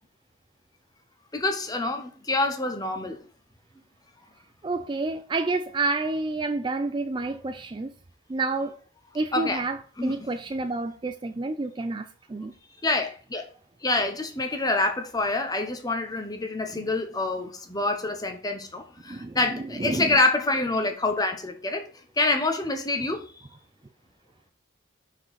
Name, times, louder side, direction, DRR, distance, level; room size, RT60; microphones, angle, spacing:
voice 1, 1.3-3.2 9.3-9.6 10.0-10.2 12.8-13.5 13.8-21.9 22.2-23.5, left 2 dB, 20° left, 1.0 m, -26 dB
voice 2, 4.6-7.9 8.3-8.8 9.1-12.5 16.7-16.8 19.1-20.1, right 3 dB, 25° right, 0.3 m, -29 dB
6.0 x 4.7 x 4.8 m
head